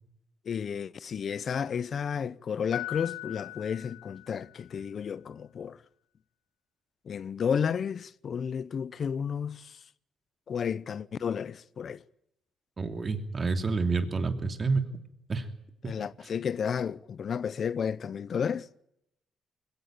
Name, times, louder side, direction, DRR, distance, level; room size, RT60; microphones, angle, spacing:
voice 1, 0.4-5.8 7.1-9.8 10.5-12.0 15.8-18.7, left 7 dB, 50° left, 0.8 m, -32 dB
Piano, 2.7-4.8, left 16 dB, 85° left, 2.6 m, -40 dB
voice 2, 12.8-14.9 15.3-15.5, right 4 dB, 35° right, 2.8 m, -28 dB
22.0 x 17.0 x 8.7 m
cardioid pair, 90°, 0 cm